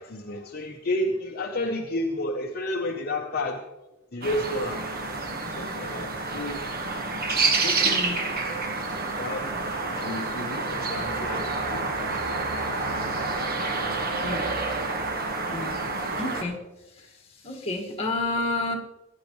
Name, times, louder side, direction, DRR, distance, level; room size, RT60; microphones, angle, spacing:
voice 1, 0.0-3.7 4.1-4.9 5.6-6.7 7.6-8.0 8.9-9.6 10.0-12.2 13.1-13.3 13.6-13.7, left 1 dB, 45° left, 1 dB, 0.8 m, -31 dB
sound 1, 4.2-16.4, right 3 dB, 45° right, 1.3 m, -28 dB
voice 2, 7.8-8.2 14.2-14.5 15.5-15.8 16.2-16.6 17.4-18.7, left 2 dB, 25° left, 1 dB, 1.8 m, -29 dB
17.0 x 10.5 x 3.1 m, 1.0 s
head